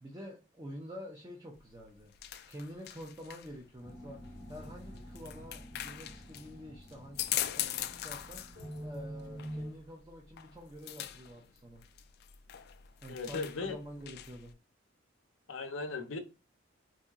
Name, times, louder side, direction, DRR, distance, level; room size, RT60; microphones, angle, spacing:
voice 1, 0.0-11.8 13.0-14.5, equal, 20° right, 0.6 m, -48 dB
sound 1, 1.6-14.5, left 12 dB, 55° left, 0.3 m, -42 dB
sound 2, 3.8-9.7, equal, 75° right, 2.0 m, -46 dB
voice 2, 13.1-13.8 15.5-16.2, left 4 dB, 80° left, 0.7 m, -37 dB
4.1 x 2.6 x 2.4 m
head